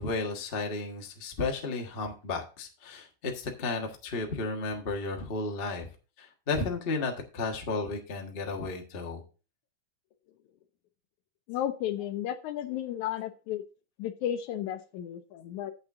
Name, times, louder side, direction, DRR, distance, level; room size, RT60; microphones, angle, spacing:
voice 1, 0.0-5.9 6.2-9.2, left 3 dB, 40° left, 2 dB, 0.7 m, -33 dB
voice 2, 11.5-13.6 14.0-15.7, left 11 dB, 75° left, 10 dB, 1.9 m, -33 dB
8.8 x 7.8 x 3.6 m, 0.34 s
omnidirectional pair, 3.7 m